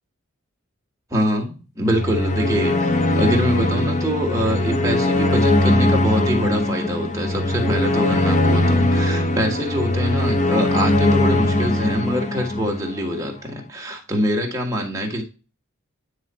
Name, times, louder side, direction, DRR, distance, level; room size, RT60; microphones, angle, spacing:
voice 1, 1.1-2.9 3.1-15.2, equal, 15° right, 0 dB, 1.6 m, -24 dB
sound 1, 1.8-13.2, left 1 dB, 35° left, 0.7 m, -20 dB
9.5 x 3.3 x 4.3 m, 0.33 s
head